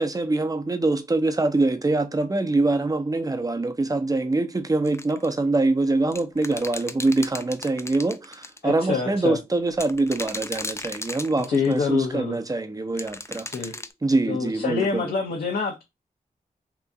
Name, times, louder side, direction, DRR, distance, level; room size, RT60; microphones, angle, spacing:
voice 1, 0.0-13.5 14.0-15.0, right 2 dB, 25° right, 0.8 m, -24 dB
sound 1, 4.8-5.3 6.1-8.6 9.7-11.8 13.0-13.9, left 2 dB, 15° left, 0.5 m, -35 dB
voice 2, 8.6-9.4 11.5-12.4 13.5-13.7 14.3-15.8, left 5 dB, 75° left, 0.9 m, -26 dB
2.9 x 2.5 x 3.6 m
cardioid pair, 50°, 15 cm